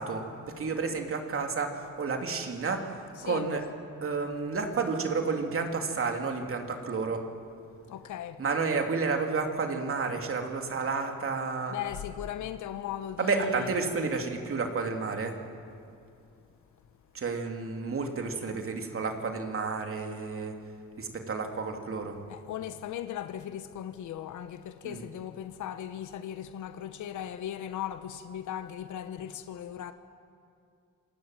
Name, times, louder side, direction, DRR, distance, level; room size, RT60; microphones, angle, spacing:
voice 1, 0.0-2.9 3.2-3.6 4.0-7.2 8.4-11.8 13.2-15.4 17.1-20.5 21.0-22.2 24.8-25.0, right 4 dB, 45° right, 3.1 m, -31 dB
voice 2, 3.2-3.5 7.9-8.4 11.7-13.7 22.3-29.9, left 10 dB, 75° left, 1.1 m, -38 dB
27.5 x 18.5 x 9.2 m
cardioid pair, 90°, 30 cm